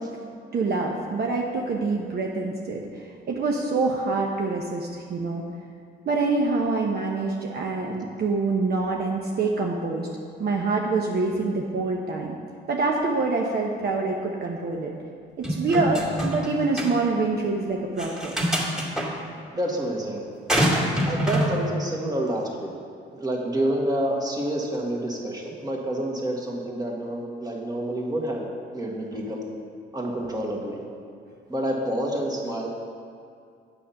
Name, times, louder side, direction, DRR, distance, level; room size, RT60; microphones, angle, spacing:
voice 1, 0.5-5.4 6.0-10.1 10.4-12.4 12.7-14.9 15.4-18.5 29.1-29.2, right 3 dB, 55° right, 0 dB, 0.9 m, -26 dB
sound 1, 15.4-16.5 16.8-16.9 18.0-19.1 20.5-21.5, equal, ahead, 2.3 m, -24 dB
voice 2, 19.5-20.2 21.1-22.7 23.1-28.5 28.7-29.5 29.9-30.8 31.5-32.7, right 1 dB, 20° right, -2 dB, 1.9 m, -28 dB
8.4 x 7.0 x 5.7 m, 2.4 s
cardioid pair, 90°, 20 cm